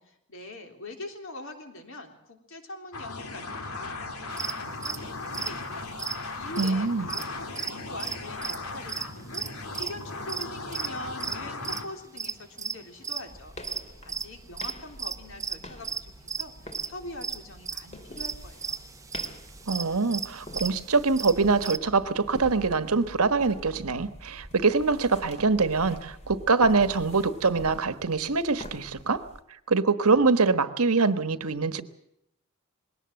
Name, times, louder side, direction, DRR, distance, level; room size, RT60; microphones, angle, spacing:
voice 1, 0.3-16.5 16.8-18.8, left 2 dB, 60° left, 5 dB, 3.4 m, -43 dB
sound 1, 2.9-11.9, left 3 dB, 85° left, 2.8 m, -37 dB
sound 2, 4.3-7.7 8.0-13.2 13.6-16.0 16.3-16.5 16.7-16.9 17.2-21.8, right 6 dB, 15° right, 0.7 m, -35 dB
voice 2, 6.6-7.1 19.7-29.2 29.7-31.8, right 4 dB, 85° right, 11 dB, 1.3 m, -24 dB
sound 3, 13.3-29.4, left 1 dB, 30° left, 2.3 m, -45 dB
21.0 x 17.5 x 7.7 m, 0.77 s
head